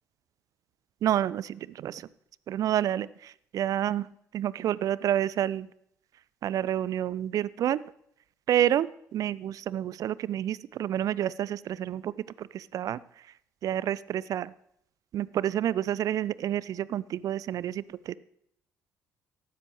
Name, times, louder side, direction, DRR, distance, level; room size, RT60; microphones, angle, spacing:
voice 1, 1.0-2.0 2.5-3.1 3.5-4.0 4.3-5.7 6.4-7.8 8.5-12.1 12.4-13.0 13.6-14.5 15.1-18.1, right 11 dB, 45° right, 21 dB, 0.4 m, -29 dB
14.0 x 12.5 x 3.1 m, 0.72 s
figure-of-eight pair, 50°, 8 cm